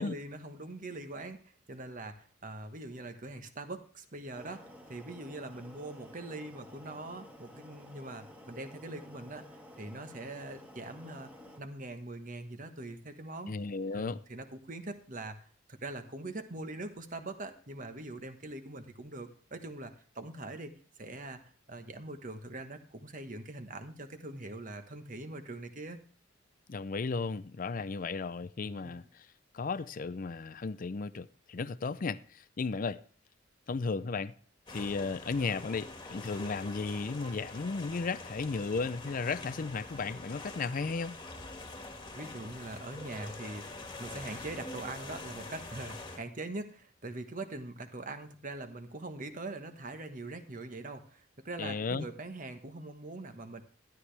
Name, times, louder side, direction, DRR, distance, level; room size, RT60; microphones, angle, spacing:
voice 1, 0.0-9.5 9.8-11.3 11.6-13.5 13.9-20.7 21.0-26.0 28.8-29.0 42.1-53.6, right 2 dB, 40° right, 1.3 m, -43 dB
sound 1, 4.3-11.6, left 1 dB, 10° right, 1.6 m, -52 dB
voice 2, 13.5-14.2 26.7-29.3 29.5-33.0 33.7-34.3 34.7-41.2 51.6-52.0, left 4 dB, 45° left, 0.5 m, -35 dB
sound 2, 34.7-46.2, left 2 dB, 20° left, 1.7 m, -45 dB
12.5 x 11.5 x 3.4 m
head